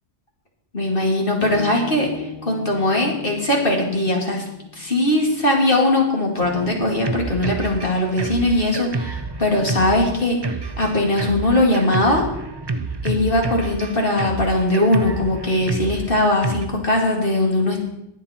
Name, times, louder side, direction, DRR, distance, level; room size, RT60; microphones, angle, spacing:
voice 1, 0.7-4.5 4.7-12.2 13.0-17.8, left 1 dB, 50° left, 0 dB, 2.4 m, -20 dB
Acoustic guitar / Strum, 1.4-6.6, left 3 dB, 20° left, 2.6 m, -39 dB
Drum kit, 6.4-16.7, right 3 dB, 30° right, 0.4 m, -29 dB
20.0 x 7.4 x 4.3 m, 0.83 s
omnidirectional pair, 1.2 m